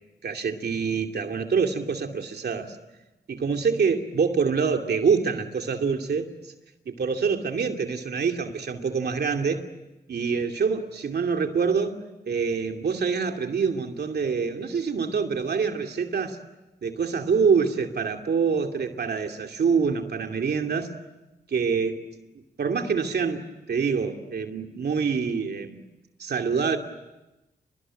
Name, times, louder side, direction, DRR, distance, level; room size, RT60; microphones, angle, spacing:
voice 1, 0.2-2.8 3.3-6.3 7.0-9.6 10.1-16.4 16.8-20.9 21.5-22.0 22.6-23.4 23.7-25.8 26.2-26.8, right 5 dB, 70° right, 4 dB, 2.7 m, -25 dB
30.0 x 21.5 x 9.1 m, 1.0 s
cardioid pair, 70°, 17 cm